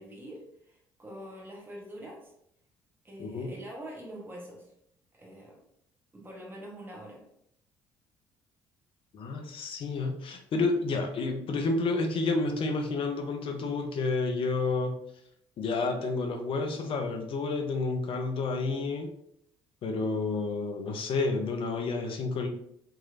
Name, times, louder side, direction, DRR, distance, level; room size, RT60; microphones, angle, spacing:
voice 1, 0.0-2.3 3.0-4.7 5.1-5.6 6.1-7.2, equal, 15° right, -2 dB, 0.9 m, -45 dB
voice 2, 3.2-3.5 9.1-14.9 15.6-19.1 19.8-22.5, left 3 dB, 45° left, 4 dB, 0.6 m, -30 dB
3.0 x 2.8 x 2.4 m, 0.73 s
figure-of-eight pair, 50°, 12 cm